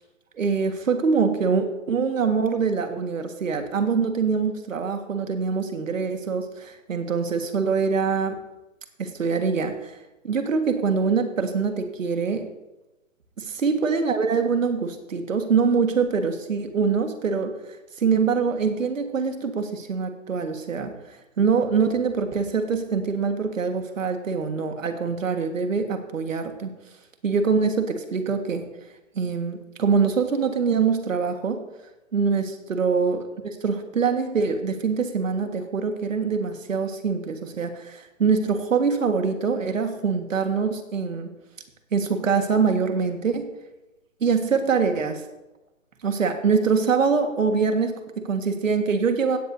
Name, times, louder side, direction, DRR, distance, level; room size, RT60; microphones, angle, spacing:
voice 1, 0.4-8.4 9.0-10.0 10.2-12.5 13.4-17.5 18.0-26.7 27.2-28.6 29.2-31.6 32.1-41.3 41.9-43.5 44.2-45.2 46.0-49.4, right 5 dB, 75° right, 6 dB, 1.7 m, -24 dB
16.5 x 9.6 x 2.7 m, 1.0 s
hypercardioid pair, 160°, 40 cm